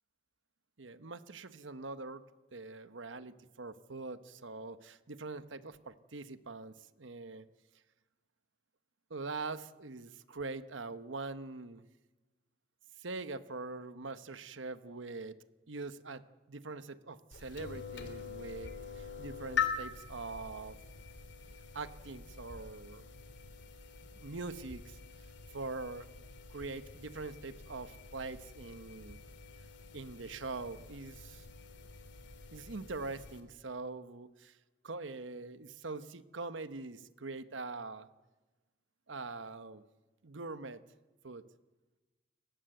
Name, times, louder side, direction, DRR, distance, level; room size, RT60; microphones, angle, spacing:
voice 1, 0.8-2.2 2.5-7.5 9.1-11.8 13.0-15.4 15.7-20.8 21.7-23.1 24.1-25.0 25.5-26.1 26.5-29.2 29.9-31.5 32.5-34.6 34.8-38.1 39.1-39.8 40.2-40.8 41.2-41.5, right 3 dB, 80° right, 12 dB, 1.1 m, -43 dB
sound 1, 17.3-33.4, left 7 dB, 70° left, 2.7 m, -44 dB
29.5 x 15.5 x 8.0 m, 1.2 s
head